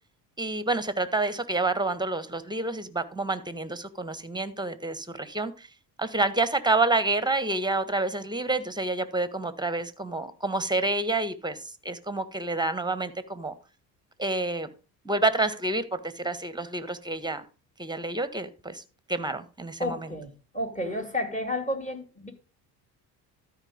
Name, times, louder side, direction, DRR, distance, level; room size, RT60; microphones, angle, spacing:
voice 1, 0.4-5.7 6.0-11.6 11.8-13.5 14.2-14.7 15.0-17.4 17.8-18.8 19.1-20.1, right 2 dB, 10° right, 13 dB, 1.5 m, -28 dB
voice 2, 19.8-22.3, left 1 dB, 15° left, 7 dB, 3.0 m, -31 dB
13.0 x 5.3 x 5.2 m, 0.33 s
hypercardioid pair, 55°, 48 cm